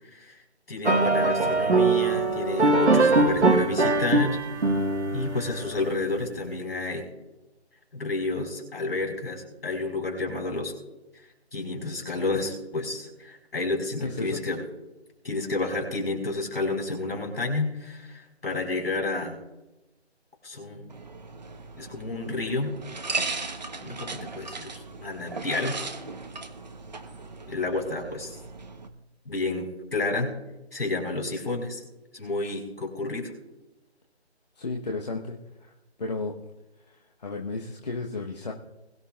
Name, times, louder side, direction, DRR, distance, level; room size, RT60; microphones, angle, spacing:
voice 1, 0.7-4.4 5.1-7.0 7.9-10.7 11.5-14.6 15.2-19.4 20.4-20.9 21.8-22.7 23.8-25.8 27.5-28.3 29.2-30.3 30.7-31.8 32.1-33.3, left 3 dB, 60° left, 2 dB, 4.9 m, -30 dB
sound 1, 0.8-6.1, right 3 dB, 85° right, 1.7 m, -22 dB
voice 2, 14.0-14.4 34.6-35.7 36.0-36.3 36.9-38.5, left 3 dB, 40° left, 0 dB, 1.2 m, -33 dB
sound 2, 20.9-28.9, right 3 dB, 40° right, 1.0 m, -37 dB
21.5 x 12.5 x 2.5 m, 1.0 s
figure-of-eight pair, 160°, 33 cm